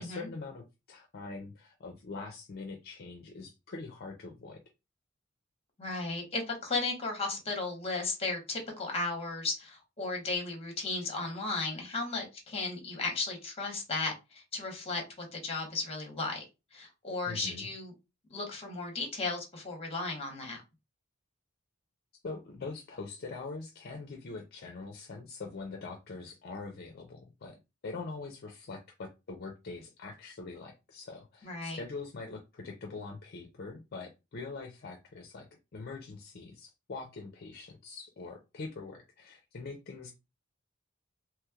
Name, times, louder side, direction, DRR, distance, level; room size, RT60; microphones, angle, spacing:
voice 1, 0.0-4.6 17.3-17.7 22.2-27.6 27.8-35.5 35.7-40.1, left 3 dB, 50° left, 0.5 m, -43 dB
voice 2, 5.8-16.4 16.7-17.9 18.3-20.6 31.4-31.8, left 3 dB, 30° left, 1.1 m, -35 dB
3.1 x 3.1 x 2.3 m
head